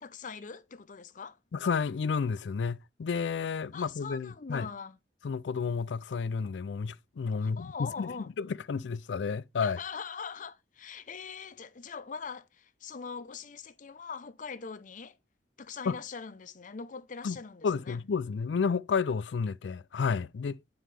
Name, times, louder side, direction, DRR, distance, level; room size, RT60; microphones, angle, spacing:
voice 1, 0.0-1.4 3.7-5.0 7.4-8.3 9.6-15.2 15.6-18.0, left 5 dB, 45° left, 0.6 m, -42 dB
voice 2, 1.5-4.7 5.2-9.8 15.9-16.0 17.2-17.4 17.6-20.6, left 5 dB, 90° left, 0.4 m, -31 dB
9.2 x 4.4 x 3.3 m
head